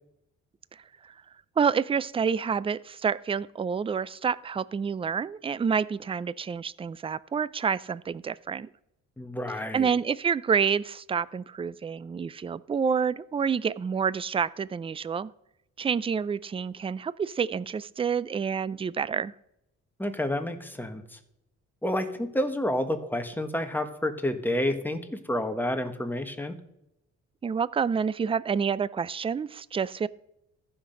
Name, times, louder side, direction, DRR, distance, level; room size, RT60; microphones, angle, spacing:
voice 1, 1.6-8.7 9.7-15.3 15.8-19.3 27.4-30.1, right 6 dB, 20° right, 20 dB, 0.4 m, -28 dB
voice 2, 9.2-9.9 20.0-21.2 21.8-26.6, left 1 dB, 5° left, 6 dB, 1.4 m, -29 dB
14.5 x 5.9 x 5.2 m, 0.84 s
cardioid pair, 90°, 30 cm